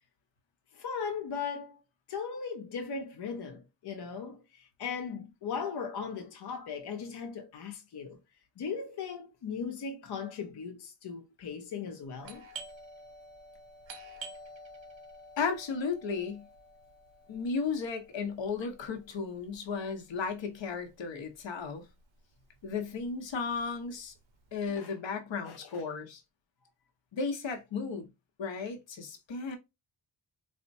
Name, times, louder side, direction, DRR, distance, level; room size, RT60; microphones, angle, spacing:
voice 1, 0.7-1.8 2.1-8.2 8.6-12.4 24.8-24.9 25.4-25.8, left 6 dB, 65° left, 0.6 m, -38 dB
Doorbell, 12.2-21.6 21.9-22.0 22.6-22.9 23.3-24.7, right 2 dB, 80° right, 0.8 m, -50 dB
voice 2, 15.4-16.4 17.3-21.8 22.6-24.1 24.5-26.2 27.1-28.1 28.4-29.6, left 5 dB, 85° left, 0.9 m, -34 dB
4.2 x 2.1 x 2.6 m
wide cardioid pair, 95°, 44 cm